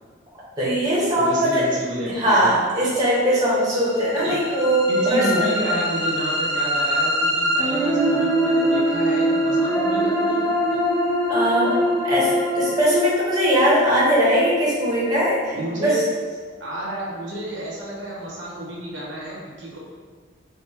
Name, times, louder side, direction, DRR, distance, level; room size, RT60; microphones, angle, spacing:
voice 1, 0.6-1.6 2.1-5.5 11.3-11.8 12.0-16.0, equal, 20° right, -8 dB, 1.0 m, -20 dB
voice 2, 1.1-2.5 4.2-4.4 4.9-10.4 10.7-10.8 15.5-16.0 16.6-19.8, right 1 dB, 75° right, -5 dB, 0.9 m, -30 dB
sound 1, 3.8-15.8, equal, ahead, 0.5 m, -23 dB
4.3 x 2.1 x 3.3 m, 1.6 s
head